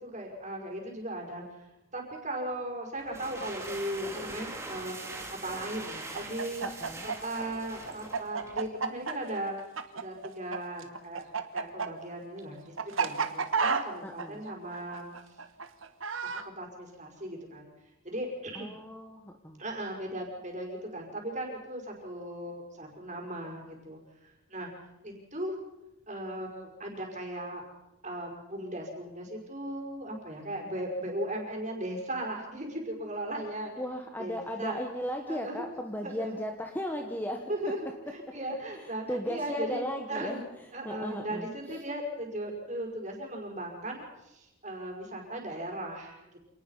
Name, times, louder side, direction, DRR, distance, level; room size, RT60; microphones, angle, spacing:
voice 1, 0.0-1.4 1.9-6.7 7.0-9.6 9.9-15.1 16.3-17.7 18.0-18.8 19.6-24.7 25.0-25.5 26.1-27.6 28.0-33.7 34.2-34.8 35.3-35.7 36.0-36.4 37.5-40.4 40.7-46.4, right 1 dB, 35° right, 1 dB, 5.4 m, -37 dB
sound 1, 2.9-8.7, right 2 dB, 15° right, 2.7 m, -42 dB
Chicken rooster, 6.1-10.6 10.8-16.4, right 5 dB, 70° right, 1.5 m, -31 dB
voice 2, 6.6-7.1 8.5-8.6 14.0-14.4 18.5-19.6 33.7-37.5 38.7-40.5 40.8-41.8, equal, 10° left, 4 dB, 1.4 m, -36 dB
27.0 x 19.0 x 5.7 m, 0.93 s
head